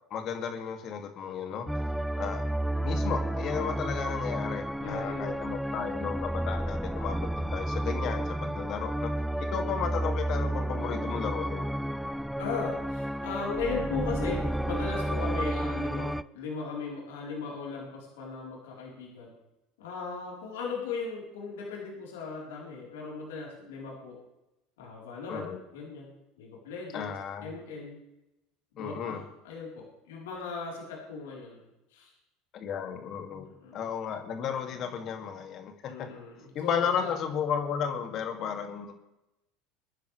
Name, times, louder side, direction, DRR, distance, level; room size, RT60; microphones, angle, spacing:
voice 1, 0.1-1.7 2.2-2.5 2.8-9.1 9.5-11.6 25.3-25.6 26.9-27.5 28.8-29.2 32.5-33.5 33.7-35.7 36.0-36.1 36.5-38.9, left 7 dB, 50° left, 5 dB, 2.5 m, -34 dB
sound 1, 1.7-16.2, right 1 dB, ahead, 0.4 m, -31 dB
voice 2, 4.8-5.3 10.7-11.1 12.4-19.3 19.8-24.2 24.8-28.0 28.7-32.1 33.6-33.9 35.9-37.1, left 4 dB, 80° left, -3 dB, 4.2 m, -38 dB
23.0 x 10.0 x 3.4 m, 0.92 s
hypercardioid pair, 80°, 0 cm